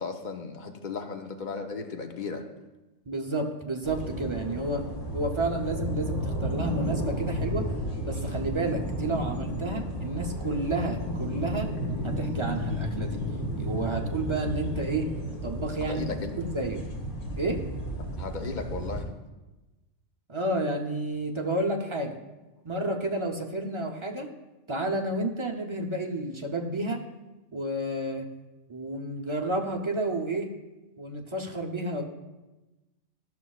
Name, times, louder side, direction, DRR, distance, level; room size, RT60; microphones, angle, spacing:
voice 1, 0.0-2.5 15.9-16.4 18.2-19.1, left 4 dB, 50° left, 5 dB, 0.6 m, -35 dB
voice 2, 3.1-4.9 5.1-7.7 8.0-11.7 12.0-13.2 13.6-15.1 15.4-16.0 16.4-16.8 17.4-17.6 20.3-22.2 22.6-24.3 24.7-27.0 27.5-28.3 28.7-30.5 31.0-32.0, right 2 dB, 40° right, 1 dB, 0.4 m, -30 dB
sound 1, 3.8-19.0, equal, 80° left, 1.8 m, -33 dB
13.0 x 6.1 x 2.3 m, 1.1 s
omnidirectional pair, 1.3 m